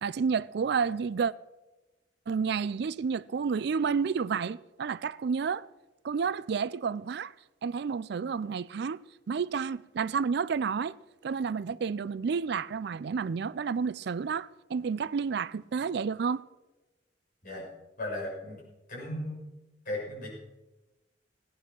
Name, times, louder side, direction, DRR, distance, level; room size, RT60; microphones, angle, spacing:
voice 1, 0.0-1.3 2.3-5.6 6.0-7.3 7.6-9.0 9.3-11.0 11.2-16.4, right 5 dB, 60° right, 0.4 m, -30 dB
voice 2, 18.0-18.6 18.9-19.4 19.8-20.3, left 1 dB, 50° left, 6.6 m, -36 dB
17.5 x 10.0 x 6.0 m
head